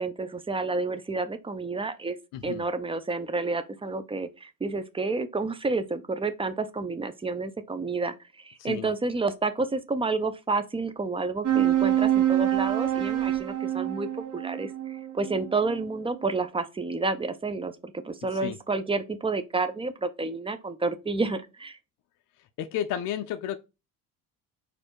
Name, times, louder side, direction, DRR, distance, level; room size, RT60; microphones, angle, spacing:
voice 1, 0.0-2.2 2.4-21.8, right 3 dB, 10° right, 0.6 m, -30 dB
voice 2, 2.3-2.6 8.6-8.9 18.4-18.6 22.6-23.6, left 10 dB, 45° left, 0.5 m, -32 dB
sound 1, 11.4-16.3, right 12 dB, 35° right, 1.0 m, -26 dB
4.3 x 2.7 x 4.5 m
figure-of-eight pair, 55°, 45 cm